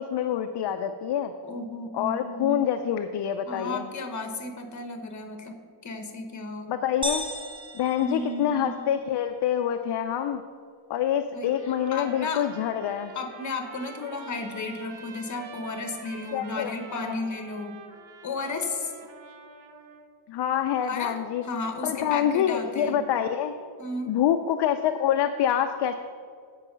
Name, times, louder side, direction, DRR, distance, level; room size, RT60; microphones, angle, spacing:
voice 1, 0.0-1.3 1.9-3.9 6.7-7.2 7.7-10.4 10.9-13.1 16.3-17.2 20.3-21.4 21.8-23.5 24.1-26.0, left 9 dB, 60° left, 7 dB, 0.5 m, -26 dB
voice 2, 1.4-2.6 3.5-5.5 5.8-6.7 8.0-8.7 11.3-11.5 11.9-12.4 13.1-17.7 18.2-18.9 20.9-21.2 21.4-23.0 23.8-24.2, left 3 dB, 35° left, 5 dB, 1.0 m, -33 dB
sound 1, 7.0-9.0, right 1 dB, 10° right, 0.3 m, -35 dB
Trumpet, 11.5-20.1, right 4 dB, 65° right, 0.9 m, -46 dB
8.3 x 4.8 x 6.7 m, 2.1 s
wide cardioid pair, 160°, 48 cm